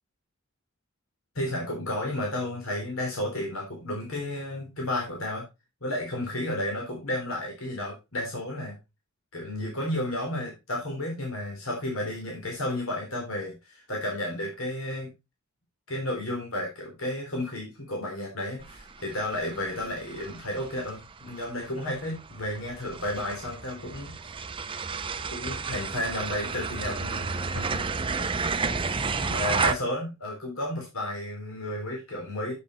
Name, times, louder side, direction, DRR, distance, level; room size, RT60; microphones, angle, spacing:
voice 1, 1.4-5.4 5.8-8.7 9.3-15.1 15.9-24.1 25.3-27.3 27.5-27.8 28.9-32.5, left 1 dB, 75° left, 0 dB, 3.6 m, -32 dB
sound 1, 18.6-29.7, right 4 dB, 25° right, 0.7 m, -32 dB
8.3 x 7.9 x 4.3 m, 0.25 s
head